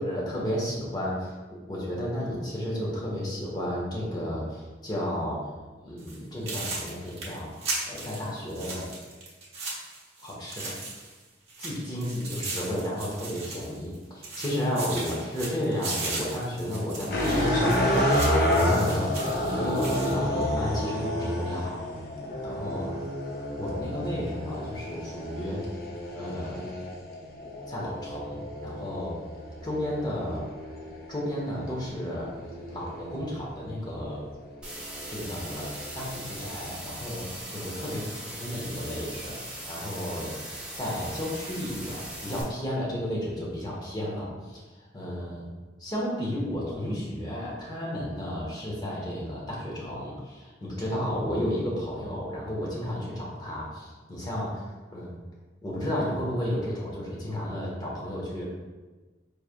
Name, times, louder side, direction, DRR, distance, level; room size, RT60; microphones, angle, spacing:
voice 1, 0.0-5.5 5.8-7.5 7.9-8.9 10.2-10.7 11.6-19.1 19.4-21.9 22.4-23.0 23.6-25.6 26.1-26.7 27.7-29.2 29.6-30.5 31.1-32.3 32.7-34.3 35.1-44.6 44.9-45.5 45.8-54.6 54.9-55.2 55.6-58.4, equal, 20° left, -5 dB, 1.0 m, -32 dB
sound 1, 6.0-6.2 6.5-11.2 11.5-14.0 14.2-20.2, right 3 dB, 35° right, 1.0 m, -37 dB
sound 2, 17.1-33.4 34.1-36.5, left 1 dB, 50° left, 0.6 m, -30 dB
sound 3, 34.6-42.4, right 1 dB, 5° right, 0.8 m, -40 dB
4.8 x 3.3 x 2.4 m, 1.3 s
head